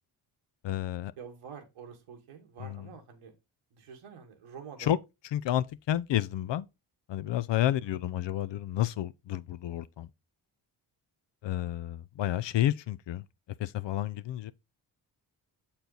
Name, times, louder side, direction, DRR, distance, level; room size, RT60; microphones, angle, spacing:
voice 1, 0.6-1.1 2.6-2.8 4.8-5.0 5.3-6.7 7.1-10.1 11.4-13.2 13.6-14.5, left 12 dB, 60° left, 0.6 m, -30 dB
voice 2, 1.2-3.3 3.7-5.0 7.8-8.0, right 6 dB, 85° right, 1.7 m, -47 dB
6.9 x 4.4 x 3.9 m
supercardioid pair, 50°, 50 cm